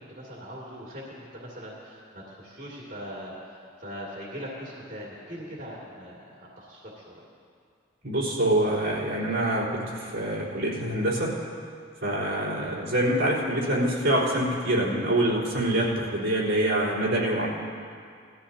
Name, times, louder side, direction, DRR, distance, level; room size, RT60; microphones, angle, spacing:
voice 1, 0.1-7.2 12.5-12.8, equal, 45° right, -6 dB, 2.6 m, -41 dB
voice 2, 8.0-11.3 12.0-17.5, right 1 dB, 80° right, -8 dB, 4.0 m, -25 dB
20.5 x 14.0 x 2.9 m, 2.3 s
head